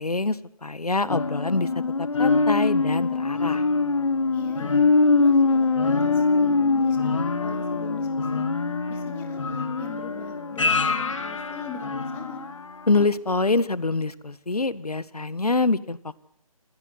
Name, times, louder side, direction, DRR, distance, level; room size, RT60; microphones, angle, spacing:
voice 1, 0.0-1.7 2.0-3.6 12.9-16.2, left 3 dB, 85° left, 17 dB, 1.6 m, -25 dB
sound 1, 1.1-12.6 13.0-13.1, left 3 dB, 55° left, 2.5 m, -23 dB
voice 2, 4.3-4.8 5.2-8.5 8.9-12.5, left 6 dB, 10° left, 7 dB, 2.6 m, -41 dB
29.0 x 16.0 x 9.6 m, 0.69 s
figure-of-eight pair, 155°, 19 cm